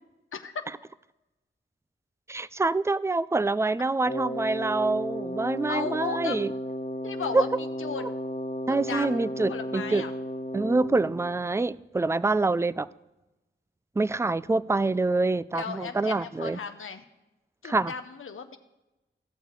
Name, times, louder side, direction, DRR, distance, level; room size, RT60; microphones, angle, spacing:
voice 1, 2.3-6.5 7.3-7.4 8.0-8.1 8.7-10.0 10.5-12.9 14.0-16.6 17.6-17.9, right 3 dB, 15° right, 0.3 m, -26 dB
Wind instrument woodwind instrument, 4.0-11.3, equal, 40° left, 1.4 m, -34 dB
voice 2, 5.7-6.4 7.0-8.1 8.7-9.2 9.5-10.1 15.5-17.0 17.6-18.6, left 6 dB, 80° left, 0.7 m, -35 dB
16.0 x 6.5 x 4.6 m
cardioid pair, 60°, 21 cm